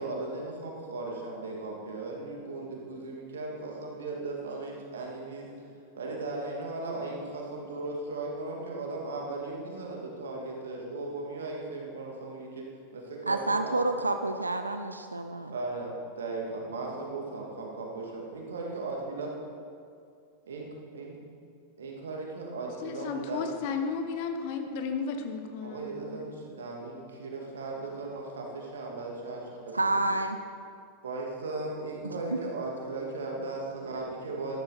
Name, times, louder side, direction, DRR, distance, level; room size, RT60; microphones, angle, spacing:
voice 1, 0.0-5.5 5.9-12.7 12.9-13.7 15.5-19.3 20.4-20.7 20.9-21.2 21.8-23.4 25.6-30.0 31.0-34.6, right 3 dB, 65° right, -1 dB, 2.4 m, -37 dB
voice 2, 13.3-15.5 29.7-30.4, right 2 dB, 80° right, 7 dB, 0.5 m, -28 dB
voice 3, 22.8-26.2, left 5 dB, 50° left, 6 dB, 1.2 m, -34 dB
13.0 x 13.0 x 4.3 m, 2.4 s
figure-of-eight pair, 90°, 0 cm